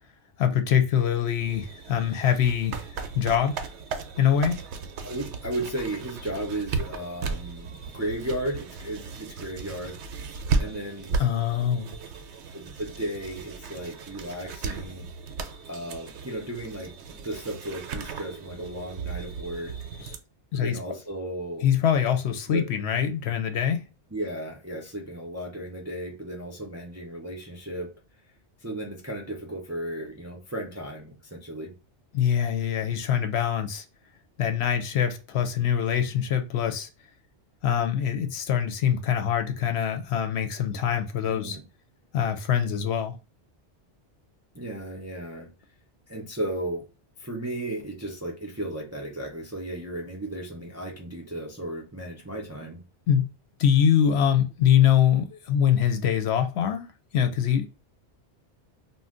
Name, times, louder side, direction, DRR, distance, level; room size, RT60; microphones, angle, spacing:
voice 1, 0.4-2.8 3.1-3.6 4.2-4.6 11.2-11.9 20.0-20.1 20.5-20.8 21.6-23.8 32.1-33.8 34.4-36.9 37.6-41.6 42.1-43.2 53.1-53.3 53.6-56.9 57.1-57.7, left 9 dB, 70° left, 0.8 m, -24 dB
sound 1, 1.4-20.2, right 4 dB, 75° right, 0.9 m, -35 dB
voice 2, 5.0-10.0 10.6-11.2 12.5-15.1 15.7-19.7 20.5-21.7 22.5-22.6 24.1-27.9 28.6-31.8 41.3-41.6 44.5-45.5 46.1-46.8 47.2-52.8, right 1 dB, 25° right, 0.4 m, -35 dB
2.5 x 2.2 x 3.6 m
omnidirectional pair, 1.2 m